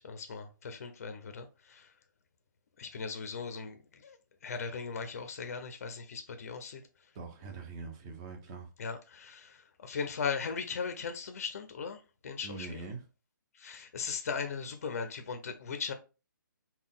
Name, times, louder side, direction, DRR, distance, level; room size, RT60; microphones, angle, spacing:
voice 1, 0.0-1.9 2.8-4.2 4.4-6.8 8.8-12.9 13.5-15.9, left 5 dB, 45° left, 0.5 m, -38 dB
voice 2, 7.1-8.7 12.4-13.0, right 4 dB, 15° right, 0.5 m, -43 dB
3.9 x 2.2 x 3.6 m
hypercardioid pair, 170°, 11 cm